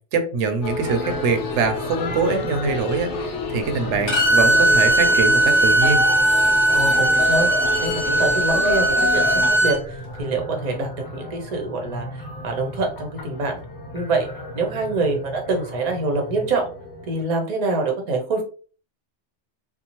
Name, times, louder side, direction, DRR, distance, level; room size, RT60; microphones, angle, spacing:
voice 1, 0.1-6.0, right 4 dB, 80° right, 6 dB, 0.9 m, -23 dB
sound 1, 0.6-9.5, left 4 dB, 90° left, 0.9 m, -28 dB
sound 2, 1.0-17.2, equal, 20° left, 1.1 m, -36 dB
Bowed string instrument, 4.1-9.8, right 2 dB, 75° left, 1.3 m, -18 dB
voice 2, 6.7-7.5 7.8-8.9 9.1-13.5 13.9-14.3 14.5-16.7 17.1-18.4, right 3 dB, 40° right, 3 dB, 0.6 m, -25 dB
2.7 x 2.0 x 2.9 m, 0.39 s
omnidirectional pair, 1.2 m